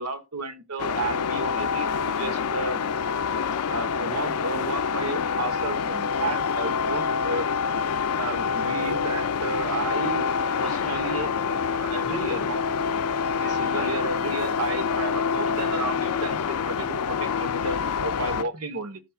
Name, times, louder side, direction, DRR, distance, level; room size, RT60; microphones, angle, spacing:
voice 1, 0.0-2.8 3.7-7.5 8.2-10.3 10.6-12.6 13.3-19.0, right 3 dB, 85° right, 1.1 m, -32 dB
sound 1, 0.8-18.4, left 6 dB, 90° left, 0.4 m, -26 dB
15.5 x 5.8 x 2.3 m
head